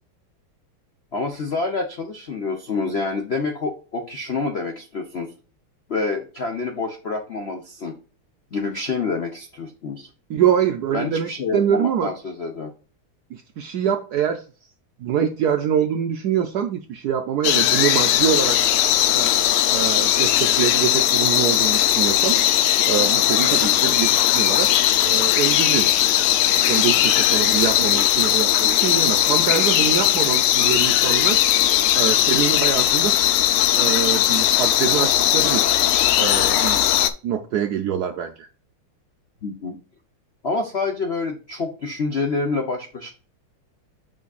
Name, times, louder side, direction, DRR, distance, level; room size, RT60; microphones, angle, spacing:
voice 1, 1.1-5.3 5.9-7.9 8.5-10.1 10.9-12.7 23.6-23.7 39.4-39.8 40.4-43.1, left 3 dB, 60° left, 0.6 m, -27 dB
voice 2, 10.3-12.1 13.3-14.4 15.0-18.6 19.1-19.4 19.6-22.4 22.9-24.7 25.0-25.9 26.7-31.4 31.9-33.2 33.7-35.6 36.2-36.8 37.2-38.5, right 9 dB, 80° right, 0.9 m, -24 dB
sound 1, 17.4-37.1, left 12 dB, 85° left, 1.5 m, -18 dB
8.2 x 5.2 x 2.4 m
omnidirectional pair, 2.3 m